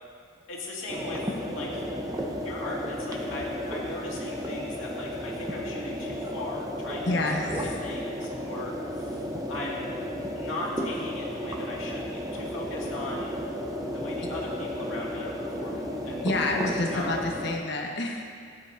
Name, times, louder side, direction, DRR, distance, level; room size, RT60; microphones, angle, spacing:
voice 1, 0.5-1.2 1.5-1.9 2.4-7.2 7.8-10.0 10.3-13.3 13.9-16.3 16.8-17.2, left 2 dB, 80° left, -4 dB, 2.1 m, -38 dB
sound 1, 0.9-17.6, equal, 20° right, 0.7 m, -33 dB
voice 2, 7.1-7.8 16.2-18.2, left 2 dB, 60° left, 1 dB, 1.2 m, -28 dB
15.0 x 9.8 x 2.6 m, 2.1 s
head